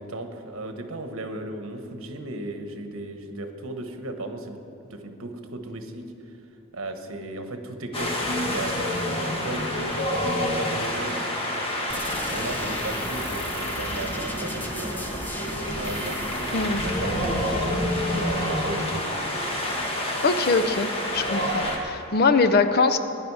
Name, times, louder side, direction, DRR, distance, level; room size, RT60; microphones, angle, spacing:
voice 1, 0.0-4.6 4.9-6.1 6.7-11.3 12.3-15.1 15.8-19.6, right 2 dB, 70° right, 6 dB, 1.2 m, -35 dB
Wind, 7.9-21.8, left 1 dB, 25° left, 1.5 m, -28 dB
sound 1, 11.9-19.5, equal, 10° left, 0.9 m, -36 dB
voice 2, 20.2-20.9 21.1-23.0, left 4 dB, 45° left, 9 dB, 0.6 m, -22 dB
17.0 x 10.5 x 4.8 m, 2.9 s
head